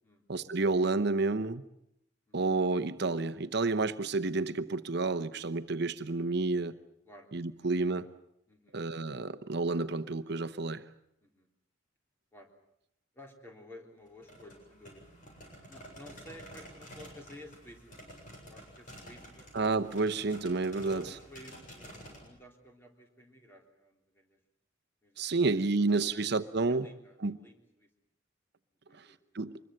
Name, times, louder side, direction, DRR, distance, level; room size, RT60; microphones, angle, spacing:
voice 1, 0.3-1.6 2.3-6.7 7.3-8.1 8.7-10.8 19.5-21.0 25.2-26.9 27.2-27.4 29.0-29.1 29.3-29.6, right 3 dB, 60° right, 0.9 m, -30 dB
voice 2, 8.5-8.8 11.2-11.5 12.3-12.5 13.1-15.1 15.7-18.1 18.4-19.5 20.8-24.4 25.0-26.4 26.7-27.9 28.9-29.2, left 1 dB, 10° left, 3.6 m, -53 dB
sound 1, 14.1-22.3, equal, 45° left, 7.8 m, -50 dB
25.5 x 21.5 x 7.8 m
head